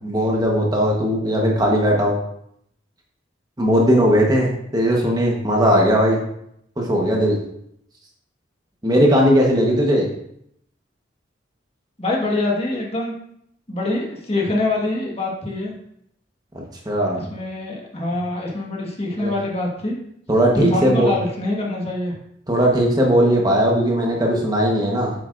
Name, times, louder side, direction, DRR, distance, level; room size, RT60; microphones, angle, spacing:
voice 1, 0.0-2.2 3.6-6.2 6.8-7.4 8.8-10.0 16.8-17.2 19.2-19.3 20.3-21.1 22.5-25.1, equal, 20° right, -1 dB, 1.2 m, -18 dB
voice 2, 12.0-13.1 13.7-15.7 17.1-20.0 20.5-22.2, left 2 dB, 30° left, -1 dB, 1.6 m, -24 dB
8.3 x 7.8 x 2.6 m, 0.73 s
head